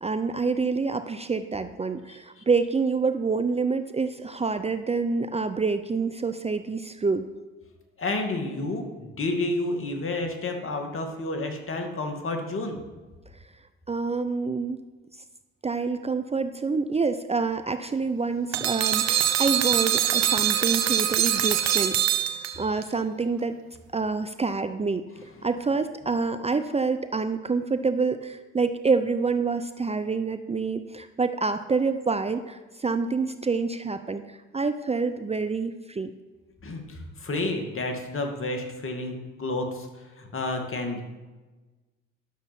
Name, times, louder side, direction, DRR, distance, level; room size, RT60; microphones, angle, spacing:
voice 1, 0.0-7.3 13.9-14.8 15.6-23.6 23.9-25.1 25.4-36.1, right 4 dB, 20° right, 9 dB, 0.6 m, -27 dB
voice 2, 2.1-2.4 8.0-12.8 36.6-41.0, left 2 dB, 45° left, 4 dB, 2.3 m, -30 dB
sound 1, 18.5-22.8, right 10 dB, 65° right, 1.0 m, -24 dB
11.5 x 6.8 x 6.0 m, 1.2 s
supercardioid pair, 65°, 30 cm